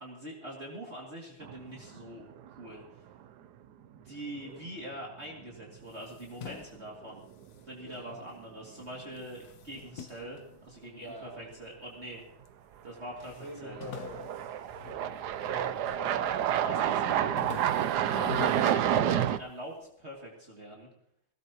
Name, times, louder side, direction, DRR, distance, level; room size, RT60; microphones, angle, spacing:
voice 1, 0.0-2.3 2.6-2.8 3.9-7.3 7.7-12.2 12.8-14.0 16.1-16.3 16.6-17.3 17.9-20.9, right 1 dB, 35° right, -2 dB, 2.9 m, -43 dB
sound 1, 1.4-2.1 2.4-2.5 5.4-5.5 6.9-7.1 7.4-7.5 12.9-13.0 13.7-19.4, right 10 dB, 70° right, 1.2 m, -29 dB
sound 2, 5.8-8.5 8.8-11.3 11.9-12.6 12.8-12.9 13.2-15.8 16.2-16.6 17.0-19.6, left 8 dB, 65° left, 1.2 m, -46 dB
voice 2, 7.8-8.2 10.9-11.6 13.3-14.5 15.4-16.3 16.9-17.2, equal, 35° left, -3 dB, 5.4 m, -45 dB
19.0 x 17.5 x 3.0 m, 0.70 s
omnidirectional pair, 1.9 m